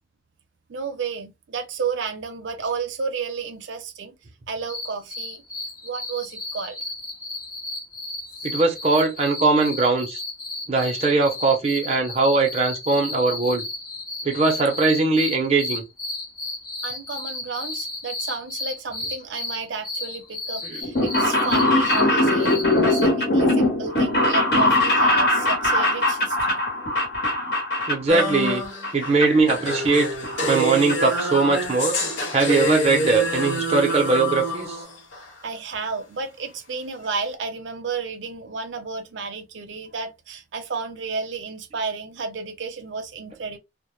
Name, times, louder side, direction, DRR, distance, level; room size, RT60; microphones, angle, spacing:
voice 1, 0.7-4.1 4.5-5.4 5.8-6.8 16.8-26.6 35.4-43.6, right 5 dB, 85° right, 0.5 m, -32 dB
sound 1, 4.6-23.1, left 2 dB, 20° left, 0.6 m, -34 dB
voice 2, 8.4-10.2 10.7-13.6 14.2-15.8 20.6-20.8 27.9-28.6 28.9-30.1 30.5-31.9 32.3-34.8, right 3 dB, 35° right, 0.6 m, -20 dB
sound 2, 20.8-28.6 28.8-29.5 29.9-30.9 31.2-31.3 32.2-32.3 32.5-32.6 32.9-33.0 33.2-33.5 33.9-34.0 34.2-34.3, left 1 dB, 60° left, 1.0 m, -21 dB
sound 3, 28.1-35.3, equal, 85° left, 0.6 m, -27 dB
2.1 x 2.1 x 3.0 m
head